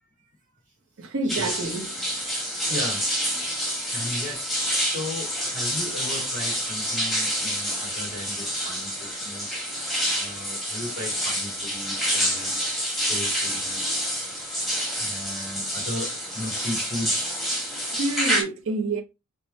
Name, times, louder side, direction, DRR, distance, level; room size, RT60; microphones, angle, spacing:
voice 1, 1.0-1.9 17.9-19.0, right 3 dB, 65° right, 0.8 m, -28 dB
sound 1, 1.3-18.4, equal, ahead, 1.2 m, -28 dB
voice 2, 2.7-3.0 3.9-9.6 10.2-12.6 13.0-13.8 15.0-17.3, left 1 dB, 35° right, 2.1 m, -36 dB
4.7 x 2.2 x 4.1 m
head